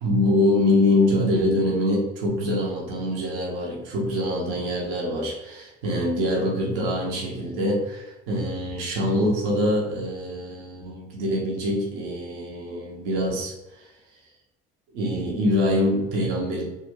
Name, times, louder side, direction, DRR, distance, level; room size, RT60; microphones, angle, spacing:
voice 1, 0.0-13.9 14.9-16.6, left 1 dB, 85° right, -3 dB, 1.0 m, -24 dB
3.4 x 2.4 x 3.6 m, 0.98 s
supercardioid pair, 65°, 30 cm